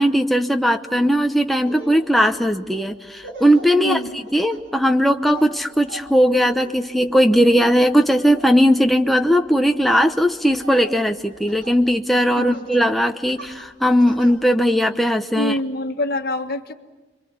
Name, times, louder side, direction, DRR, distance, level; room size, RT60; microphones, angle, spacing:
voice 1, 0.0-4.0 4.3-15.6, equal, ahead, 4 dB, 0.8 m, -18 dB
Laughter, 1.0-1.2 1.6-11.8 12.1-12.8 13.3-14.3, right 2 dB, 80° right, 4.3 m, -40 dB
voice 2, 3.8-4.2 12.4-12.6 15.3-16.7, left 1 dB, 55° left, 6 dB, 1.6 m, -25 dB
30.0 x 24.0 x 7.3 m, 1.1 s
head